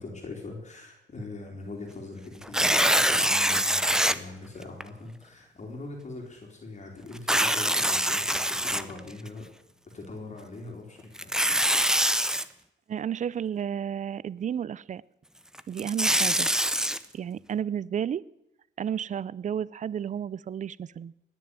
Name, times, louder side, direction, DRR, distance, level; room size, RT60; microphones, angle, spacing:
voice 1, 0.0-9.5 9.9-11.3, left 2 dB, 35° left, 1 dB, 3.4 m, -42 dB
Tearing, 2.4-4.2 4.8-4.9 7.2-9.3 11.2-12.4 15.6-17.0, right 1 dB, 5° right, 0.7 m, -24 dB
voice 2, 12.9-15.0 15.7-16.5 17.1-18.2 18.8-21.1, right 8 dB, 40° right, 22 dB, 0.5 m, -32 dB
19.5 x 7.0 x 9.5 m, 0.89 s
cardioid pair, 90°, 20 cm